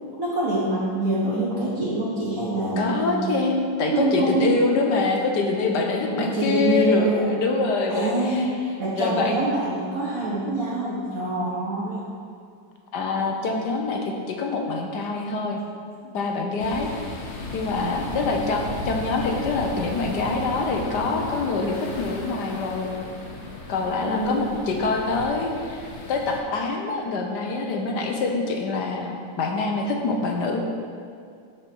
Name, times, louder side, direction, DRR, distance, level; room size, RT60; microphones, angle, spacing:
voice 1, 0.2-3.3 3.8-4.5 6.0-7.4 7.9-12.0 24.0-24.5, right 2 dB, 45° right, -8 dB, 1.5 m, -25 dB
voice 2, 2.8-8.5 8.9-9.4 12.9-15.6 16.1-16.9 17.5-22.9 23.7-30.6, left 3 dB, 65° left, 2 dB, 1.2 m, -25 dB
sound 1, 16.6-26.4, left 2 dB, 45° left, 1.0 m, -35 dB
11.5 x 4.8 x 4.5 m, 2.3 s
omnidirectional pair, 2.2 m